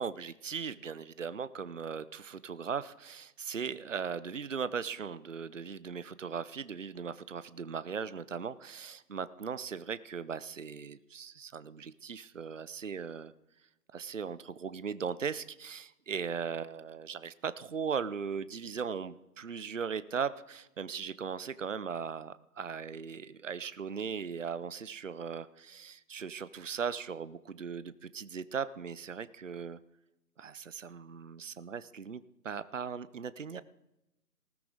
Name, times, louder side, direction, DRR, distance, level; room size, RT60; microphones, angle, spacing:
voice 1, 0.0-13.3 13.9-29.8 30.4-33.6, right 6 dB, 50° right, 16 dB, 0.6 m, -38 dB
18.5 x 15.5 x 3.7 m, 0.89 s
figure-of-eight pair, 165°, 48 cm